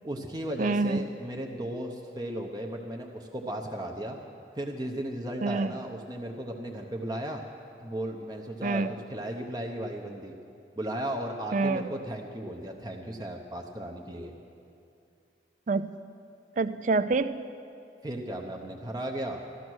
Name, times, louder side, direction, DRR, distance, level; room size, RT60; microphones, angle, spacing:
voice 1, 0.0-4.2 4.5-7.4 7.8-8.8 9.1-10.3 10.8-14.3 18.0-19.4, right 1 dB, 20° right, 2 dB, 0.8 m, -35 dB
voice 2, 0.6-1.0 5.4-5.8 8.6-8.9 11.5-11.9 15.7-16.0 16.6-17.4, right 3 dB, 45° right, 13 dB, 0.4 m, -27 dB
14.0 x 13.0 x 6.2 m, 2.5 s
head